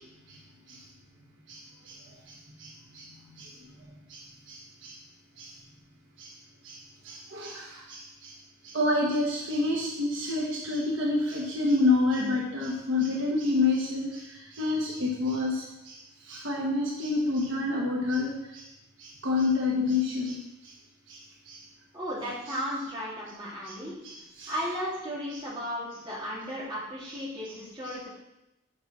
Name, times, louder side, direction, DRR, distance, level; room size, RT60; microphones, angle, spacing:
voice 1, 1.5-2.0 2.3-3.1 3.3-3.5 4.1-5.0 5.4-5.5 6.2-6.3 6.6-6.8 7.0-8.3 8.6-16.0 16.2-18.7 19.0-20.7 21.1-21.2 21.5-21.6 22.5-22.6 23.6-23.7 24.0-24.5 27.5-27.6, left 3 dB, 65° right, -2 dB, 1.3 m, -29 dB
voice 2, 21.9-24.0 24.5-28.1, equal, 20° right, -8 dB, 3.0 m, -35 dB
6.6 x 5.9 x 6.0 m, 0.91 s
head